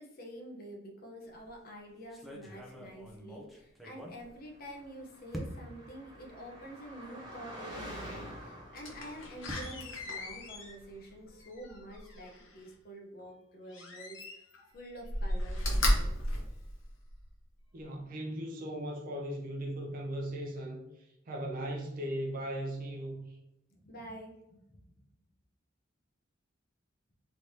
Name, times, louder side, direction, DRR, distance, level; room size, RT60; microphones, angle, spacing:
voice 1, 0.0-14.4 14.7-16.4 23.7-24.8, right 1 dB, 50° left, 0.8 m, -48 dB
sound 1, 1.3-1.6 2.1-4.9 5.3-5.9 6.6-6.7 7.0-7.1 8.8-11.1, equal, ahead, 0.5 m, -46 dB
Car passing by, 4.7-10.7, equal, 20° right, 1.1 m, -48 dB
Slam, 8.7-12.6 13.7-14.6 15.0-17.3 17.8-17.9, left 1 dB, 85° left, 0.8 m, -34 dB
voice 2, 17.7-23.4, right 1 dB, 45° right, 0.6 m, -38 dB
3.2 x 3.1 x 2.7 m
head